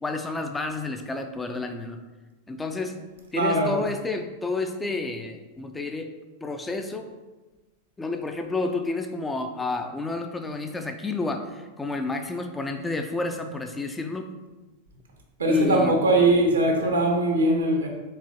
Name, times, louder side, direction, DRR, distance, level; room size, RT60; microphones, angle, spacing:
voice 1, 0.0-2.0 2.5-2.9 3.3-6.1 6.4-7.1 8.0-14.3 15.5-16.0, left 3 dB, 10° left, 0.4 m, -30 dB
voice 2, 3.3-3.8 15.4-17.9, right 2 dB, 70° right, 0.8 m, -21 dB
4.7 x 3.6 x 2.9 m
figure-of-eight pair, 90°, 0 cm